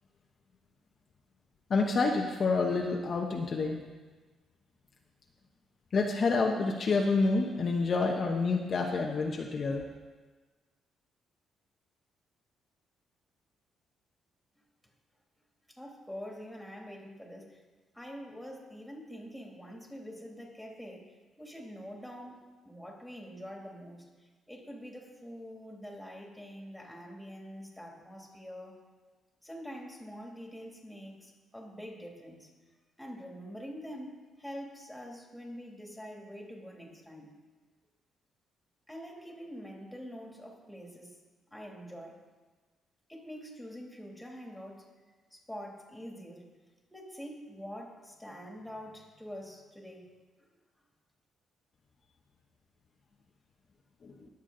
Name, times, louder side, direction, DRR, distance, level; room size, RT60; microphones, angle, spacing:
voice 1, 1.7-3.8 5.9-9.8 54.0-54.1, left 3 dB, 45° left, 1 dB, 1.0 m, -28 dB
voice 2, 15.8-17.6 17.9-21.1 21.4-24.1 24.5-28.8 29.4-32.5 33.0-37.3 38.9-41.1 41.5-42.2 43.1-44.9 45.3-46.4 46.9-50.1 50.4-50.5, equal, 5° left, 0 dB, 2.7 m, -45 dB
20.0 x 7.2 x 3.9 m, 1.3 s
cardioid pair, 90°, 0 cm